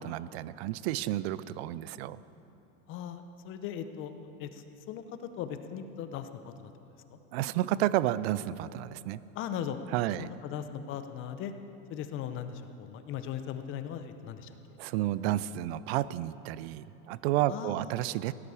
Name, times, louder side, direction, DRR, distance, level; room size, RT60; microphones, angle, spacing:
voice 1, 0.0-2.2 7.3-9.2 9.9-10.3 14.8-18.3, right 14 dB, 50° right, 18 dB, 0.4 m, -31 dB
voice 2, 2.9-5.0 5.4-6.7 7.1-7.2 9.3-9.8 10.2-11.5 11.9-14.5 17.5-18.0, left 9 dB, 30° left, 9 dB, 0.7 m, -38 dB
16.5 x 9.9 x 4.9 m, 2.9 s
supercardioid pair, 135°, 40 cm